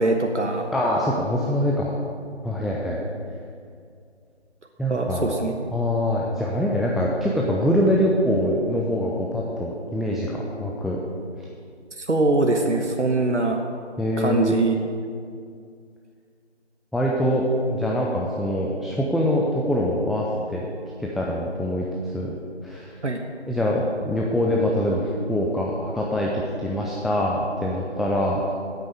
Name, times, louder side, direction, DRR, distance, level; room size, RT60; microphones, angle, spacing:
voice 1, 0.0-0.7 4.9-5.5 12.0-13.6 14.2-14.7 23.0-23.2, right 2 dB, 90° right, 3 dB, 1.2 m, -22 dB
voice 2, 0.7-1.9 2.4-3.0 4.8-5.3 5.7-11.0 14.0-14.6 16.9-20.7 21.0-22.3 22.6-23.0 23.5-28.4, equal, ahead, -3 dB, 0.4 m, -24 dB
8.8 x 8.2 x 6.8 m, 2.3 s
figure-of-eight pair, 175°, 35 cm